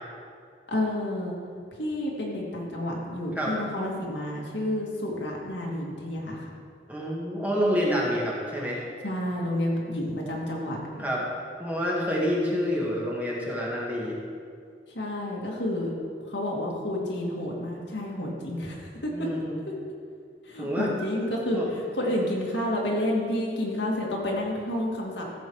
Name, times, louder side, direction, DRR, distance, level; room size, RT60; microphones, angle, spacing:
voice 1, 0.7-1.4 1.7-6.5 9.0-11.0 14.9-15.9 16.3-19.3 19.7-19.8 20.5-25.3, left 1 dB, 75° left, -2 dB, 2.1 m, -30 dB
voice 2, 6.9-8.8 11.0-11.2 11.6-14.2 19.1-19.6 20.6-20.9 21.5-21.7, equal, 10° right, -4 dB, 1.9 m, -28 dB
14.5 x 7.1 x 4.8 m, 2.2 s
head